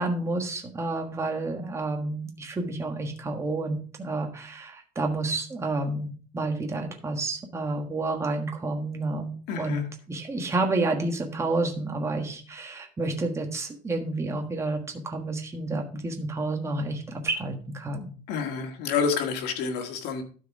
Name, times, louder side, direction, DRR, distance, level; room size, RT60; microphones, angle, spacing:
voice 1, 0.0-14.8 15.0-18.1, right 2 dB, 15° right, 3 dB, 1.4 m, -30 dB
voice 2, 9.5-9.8 18.3-20.2, left 6 dB, 85° left, 4 dB, 1.9 m, -28 dB
12.5 x 4.8 x 4.7 m, 0.41 s
cardioid pair, 160°, 16 cm